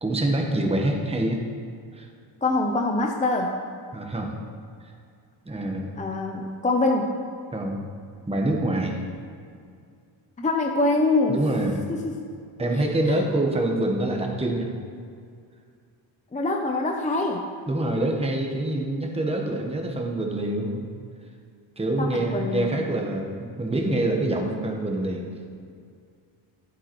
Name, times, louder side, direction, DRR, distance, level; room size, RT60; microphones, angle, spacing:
voice 1, 0.0-1.4 1.9-2.1 3.9-4.3 5.4-5.9 7.5-7.9 8.3-9.0 11.3-11.8 12.6-14.7 17.7-20.8 21.8-25.3, right 1 dB, 15° right, 1 dB, 1.2 m, -26 dB
voice 2, 2.4-3.5 6.0-7.1 10.4-11.4 11.9-12.2 12.7-13.2 16.3-17.4 22.0-22.8, left 2 dB, 15° left, 2 dB, 0.7 m, -24 dB
9.8 x 8.6 x 3.1 m, 2.3 s
cardioid pair, 75°, 47 cm